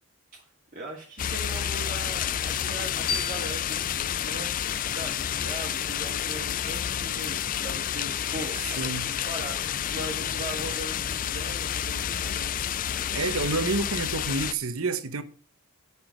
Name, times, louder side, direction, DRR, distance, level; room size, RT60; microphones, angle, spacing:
voice 1, 0.7-4.5 4.9-12.5, right 1 dB, 35° right, 1.9 m, -40 dB
sound 1, 1.2-14.5, left 10 dB, 40° left, 0.3 m, -30 dB
sound 2, 3.1-5.9, left 5 dB, 75° left, 2.8 m, -38 dB
voice 2, 8.8-9.1 13.1-15.2, right 3 dB, 70° right, 1.0 m, -28 dB
9.2 x 6.2 x 4.9 m
head